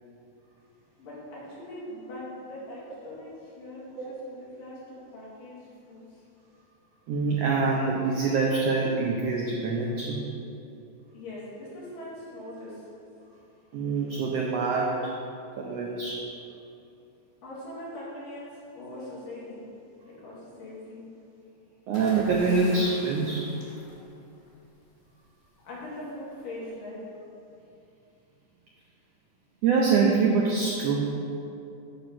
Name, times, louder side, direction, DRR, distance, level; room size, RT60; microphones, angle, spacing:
voice 1, 1.0-6.0 11.1-12.9 17.4-18.5 18.8-19.6 20.0-21.0 25.7-27.1, left 1 dB, 80° left, -8 dB, 3.9 m, -41 dB
voice 2, 7.1-10.2 13.7-15.0 15.6-16.2 21.9-23.5 29.6-31.1, right 4 dB, 80° right, -2 dB, 1.4 m, -25 dB
sound 1, 21.9-24.7 25.9-26.2, equal, 30° left, 1.9 m, -44 dB
8.8 x 4.5 x 6.1 m, 2.7 s
omnidirectional pair, 3.8 m